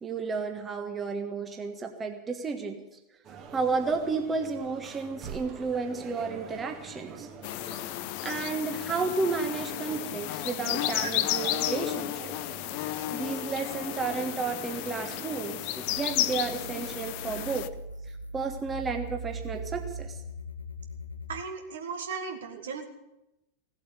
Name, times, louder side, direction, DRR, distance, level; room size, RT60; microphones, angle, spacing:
voice 1, 0.0-2.8 3.5-7.3 8.2-12.3 13.1-17.7 18.3-20.2, right 4 dB, 20° right, 5 dB, 1.5 m, -32 dB
sound 1, 3.2-17.1, right 5 dB, 35° right, 2.0 m, -45 dB
sound 2, 7.4-17.7, left 16 dB, 45° left, 0.6 m, -33 dB
sound 3, 15.9-21.4, right 2 dB, 90° left, 1.0 m, -40 dB
voice 2, 21.3-22.8, right 5 dB, 65° right, 4 dB, 2.1 m, -36 dB
17.0 x 8.1 x 9.6 m, 0.92 s
figure-of-eight pair, 90°, 0 cm